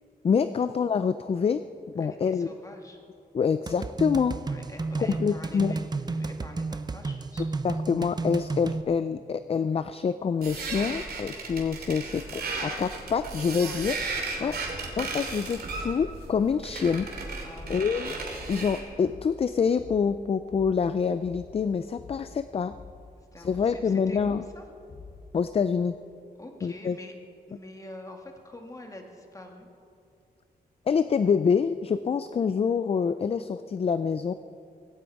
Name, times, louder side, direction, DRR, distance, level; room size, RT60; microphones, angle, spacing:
voice 1, 0.2-1.6 1.9-2.5 3.3-4.4 5.0-5.7 7.6-13.9 14.4-14.6 15.0-17.4 17.7-18.2 18.5-22.7 23.4-24.4 25.3-25.9 26.6-27.0 30.9-34.3, left 6 dB, 40° left, 12 dB, 0.4 m, -26 dB
voice 2, 2.0-3.0 4.4-7.7 13.6-13.8 14.4-14.6 17.4-17.8 23.3-24.6 26.4-27.1 27.5-29.7, left 1 dB, 20° left, 2 dB, 1.9 m, -45 dB
sound 1, 3.7-8.8, right 3 dB, 25° right, 0.6 m, -32 dB
sound 2, 10.4-18.9, right 3 dB, 75° right, 2.9 m, -35 dB
sound 3, 16.8-17.2 17.6-18.0 18.3-18.7 19.0-19.4 19.8-20.1 20.5-20.9 21.2-21.6 22.0-22.3 22.7-23.1 23.4-23.8 24.2-24.5 24.9-25.3, left 4 dB, 75° left, 3.0 m, -47 dB
17.5 x 16.5 x 4.8 m, 2.5 s
wide cardioid pair, 135°, 16 cm